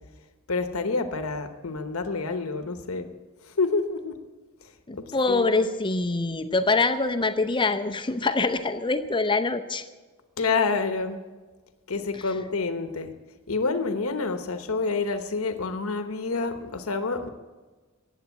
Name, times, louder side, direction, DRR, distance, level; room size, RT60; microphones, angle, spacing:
voice 1, 0.5-3.1 3.6-4.2 5.0-5.6 10.4-11.2 11.9-13.1 13.5-17.3, left 4 dB, 75° left, 8 dB, 1.0 m, -28 dB
voice 2, 4.9-9.8 12.1-12.3, left 3 dB, 25° left, 8 dB, 0.7 m, -25 dB
15.0 x 9.2 x 8.4 m, 1.3 s
head